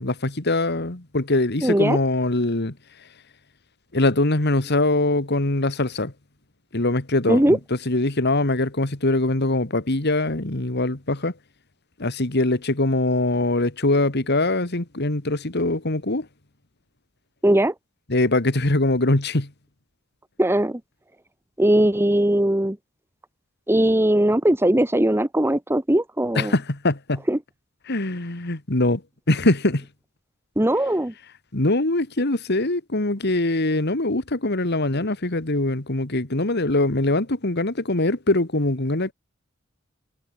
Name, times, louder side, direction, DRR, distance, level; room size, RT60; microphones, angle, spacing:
voice 1, 0.0-2.8 3.9-6.1 6.7-7.6 7.9-11.3 12.0-16.3 18.1-19.5 26.4-27.2 27.9-29.0 29.3-29.9 31.5-39.1, left 2 dB, 55° left, 2.2 m, -22 dB
voice 2, 1.6-2.0 7.3-7.6 17.4-17.7 20.4-20.8 21.6-22.8 23.7-26.5 27.3-27.4 30.6-31.1, right 1 dB, 10° right, 1.1 m, -19 dB
head